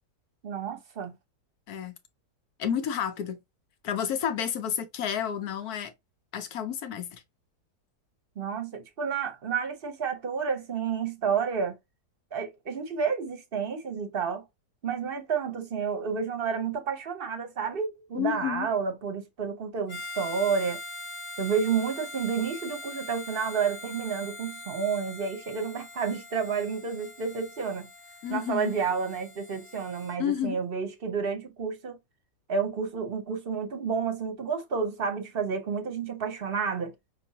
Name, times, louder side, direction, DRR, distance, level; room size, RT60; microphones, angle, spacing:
voice 1, 0.4-1.1 8.4-11.8 12.3-14.4 14.8-20.8 21.4-27.9 28.3-32.0 32.5-36.9, right 6 dB, 45° right, 0.9 m, -30 dB
voice 2, 1.7-2.0 2.6-3.4 3.8-5.9 6.3-7.2 18.1-18.7 28.2-28.7 30.2-30.6, left 9 dB, 70° left, 1.3 m, -30 dB
Harmonica, 19.9-30.2, left 2 dB, 40° left, 0.7 m, -42 dB
5.9 x 2.4 x 2.8 m
omnidirectional pair, 1.8 m